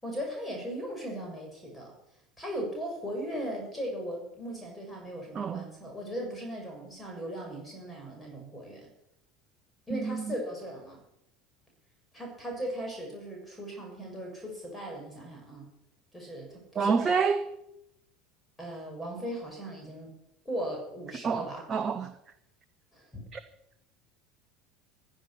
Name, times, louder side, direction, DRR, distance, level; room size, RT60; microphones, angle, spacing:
voice 1, 0.0-1.9 2.4-8.9 9.9-11.0 12.1-15.7 16.1-17.1 18.6-20.1 20.4-21.6 22.9-23.2, equal, 10° left, 6.9 m, -38 dB
voice 2, 9.9-10.3 16.8-17.5 21.2-22.1 23.3-23.4, right 5 dB, 30° right, 0.8 m, -28 dB
15.5 x 8.5 x 6.7 m
figure-of-eight pair, 70°, 0 cm